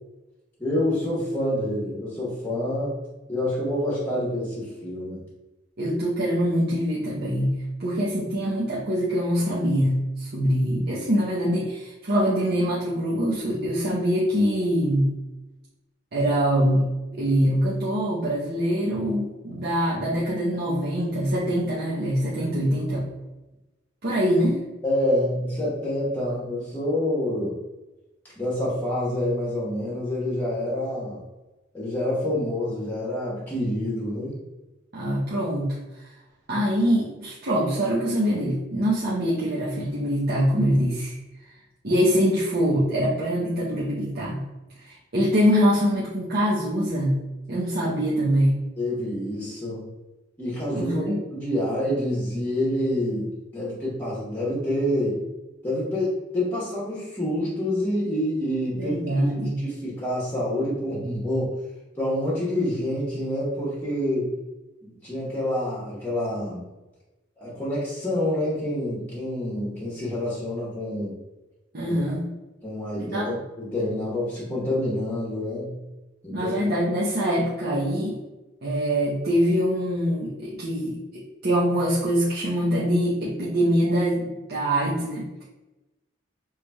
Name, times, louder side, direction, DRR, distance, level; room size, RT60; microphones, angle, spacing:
voice 1, 0.6-3.0 3.3-5.2 24.8-27.5 28.4-31.2 31.7-34.3 47.8-47.9 48.8-49.8 50.4-55.2 55.6-61.5 61.9-64.3 64.8-66.7 67.4-71.2 71.9-72.2 72.6-75.7 76.2-76.5, left 1 dB, 10° left, -7 dB, 1.1 m, -27 dB
voice 2, 5.8-15.1 16.1-23.1 24.0-24.6 34.9-35.8 36.5-41.1 41.8-44.4 44.8-44.9 45.1-47.2 47.5-48.6 50.7-51.2 58.8-59.6 71.7-72.3 73.1-73.4 76.3-78.2 78.6-85.3, equal, 55° right, -7 dB, 0.8 m, -24 dB
5.7 x 3.2 x 2.3 m, 1.1 s
head